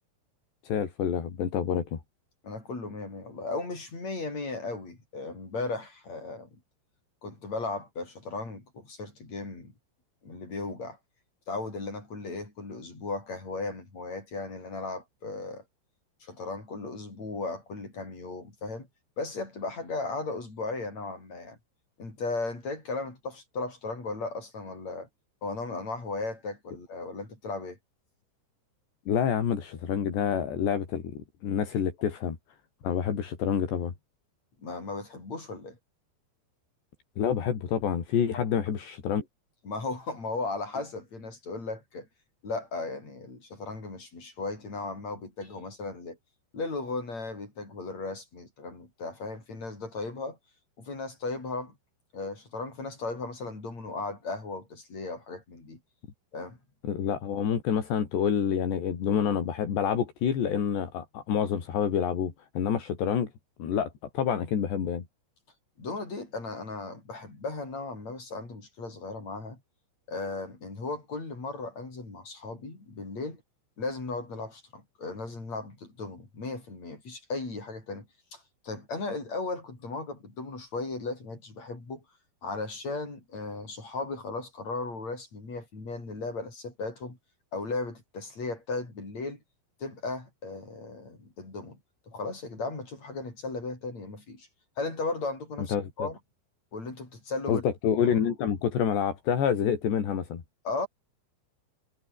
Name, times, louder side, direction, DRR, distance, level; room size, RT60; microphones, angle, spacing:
voice 1, 0.6-2.0 29.1-31.1 31.4-32.4 32.8-33.9 37.2-39.2 56.8-63.3 63.6-65.1 95.7-96.1 97.5-100.4, left 8 dB, 75° left, 5.8 m, -28 dB
voice 2, 2.4-6.6 7.2-9.7 10.2-11.0 11.5-15.6 16.2-18.9 19.2-21.6 22.0-25.1 25.4-27.8 34.6-35.8 38.3-38.4 39.6-42.1 42.4-46.2 46.5-50.4 50.8-51.8 52.1-55.8 56.3-56.6 65.8-69.6 70.1-73.4 73.8-78.1 78.3-82.0 82.4-87.2 87.5-89.4 89.8-91.8 92.1-94.5 94.8-96.2 96.7-97.6 98.0-98.3 100.6-100.9, left 3 dB, 40° left, 9.2 m, -36 dB
omnidirectional pair, 5.0 m